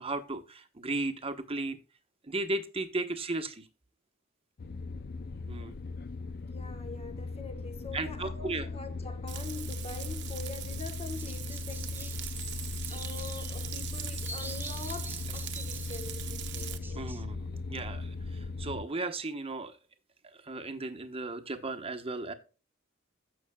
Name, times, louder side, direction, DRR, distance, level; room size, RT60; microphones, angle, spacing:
voice 1, 0.0-1.8 2.2-3.7 5.5-5.7 7.9-8.7 17.0-19.7 20.2-22.3, right 2 dB, 25° right, 1.0 m, -35 dB
sound 1, 4.6-18.8, left 3 dB, 45° left, 0.5 m, -38 dB
voice 2, 6.4-17.2, left 3 dB, 30° left, 1.1 m, -45 dB
Frying (food), 9.3-16.8, right 13 dB, 55° right, 1.0 m, -42 dB
sound 2, 11.2-17.2, right 2 dB, 10° right, 0.7 m, -47 dB
15.0 x 6.4 x 2.2 m
head